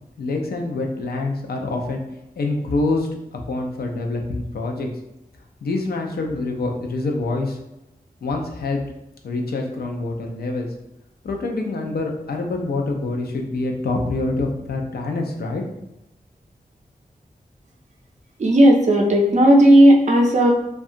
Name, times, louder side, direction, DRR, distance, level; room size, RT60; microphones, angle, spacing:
voice 1, 0.2-2.0 2.4-4.9 5.6-7.6 8.2-8.8 9.2-10.7 11.2-15.6, left 2 dB, 85° left, 2 dB, 0.4 m, -26 dB
voice 2, 18.4-20.5, right 1 dB, 50° right, 1 dB, 0.5 m, -13 dB
2.7 x 2.3 x 2.5 m, 0.89 s
wide cardioid pair, 90°, 16 cm